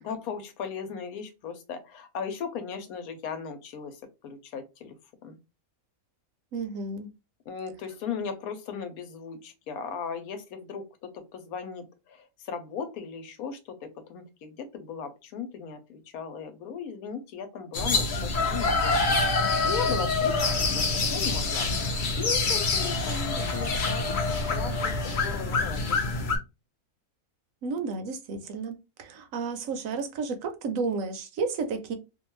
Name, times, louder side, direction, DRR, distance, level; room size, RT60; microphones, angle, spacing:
voice 1, 0.0-5.0 5.2-5.4 7.5-26.0, left 6 dB, 90° left, 1.1 m, -37 dB
voice 2, 6.5-7.1 27.6-32.0, right 4 dB, 70° right, 0.9 m, -32 dB
sound 1, 17.7-26.4, left 3 dB, 55° left, 0.5 m, -26 dB
2.7 x 2.3 x 2.9 m
omnidirectional pair, 1.5 m